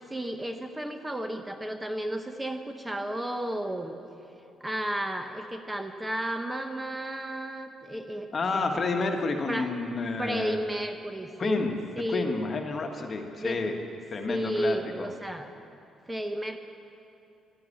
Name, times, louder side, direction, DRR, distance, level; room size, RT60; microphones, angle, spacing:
voice 1, 0.1-3.9 4.6-8.6 8.9-9.1 9.5-9.7 10.2-11.6 12.0-12.3 13.4-13.7 14.3-15.5 16.1-16.6, right 1 dB, 10° right, 6 dB, 0.9 m, -33 dB
voice 2, 8.3-10.6 11.4-11.8 12.1-13.7 14.1-15.1, left 3 dB, 40° left, 4 dB, 1.4 m, -30 dB
12.0 x 10.5 x 8.6 m, 2.7 s
cardioid pair, 90°, 0 cm